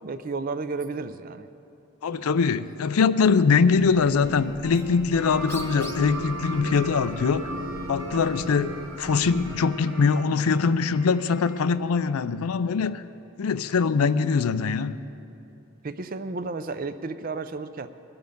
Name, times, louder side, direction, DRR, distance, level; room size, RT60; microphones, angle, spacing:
voice 1, 0.0-1.5 2.1-2.2 15.8-17.9, right 3 dB, 40° right, 0.5 m, -32 dB
voice 2, 2.0-7.5 7.9-13.0 13.4-15.0, left 5 dB, 85° left, 0.4 m, -23 dB
Bird, 3.7-9.7, left 1 dB, 10° left, 0.8 m, -45 dB
Wind instrument woodwind instrument, 4.1-12.3, right 2 dB, 15° right, 0.8 m, -46 dB
sound 1, 5.2-10.3, equal, 70° right, 1.4 m, -35 dB
21.0 x 7.1 x 5.3 m
head